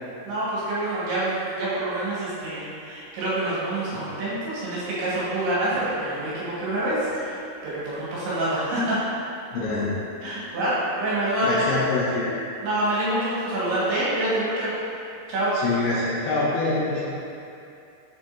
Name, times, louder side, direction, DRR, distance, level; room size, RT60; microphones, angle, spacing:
voice 1, 0.3-9.0 10.2-11.6 12.6-14.7 15.3-15.5, right 1 dB, 70° right, -9 dB, 3.6 m, -26 dB
voice 2, 9.5-9.9 11.4-12.4 15.5-17.2, left 3 dB, 75° left, -7 dB, 2.8 m, -25 dB
7.3 x 6.0 x 2.6 m, 2.6 s
omnidirectional pair, 5.8 m